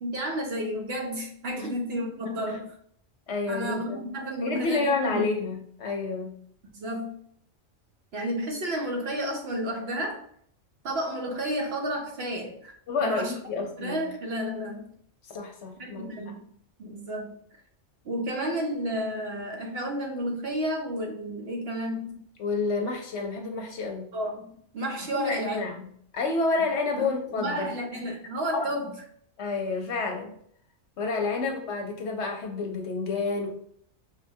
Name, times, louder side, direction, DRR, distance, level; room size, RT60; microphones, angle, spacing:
voice 1, 0.0-2.7 3.5-5.2 6.7-7.2 8.1-10.2 10.8-12.7 13.0-13.4 13.8-14.9 15.8-16.4 16.8-17.4 18.0-22.2 24.1-25.6 27.0-28.9, equal, 60° right, 1 dB, 0.7 m, -31 dB
voice 2, 3.3-4.0 4.4-6.3 12.9-14.0 15.2-16.1 22.4-24.1 25.1-25.9 26.1-27.7 28.1-28.2 28.5-28.7 29.4-30.3 31.0-33.5, left 3 dB, 65° left, 3 dB, 0.9 m, -29 dB
5.1 x 2.2 x 2.7 m, 0.64 s
omnidirectional pair, 1.4 m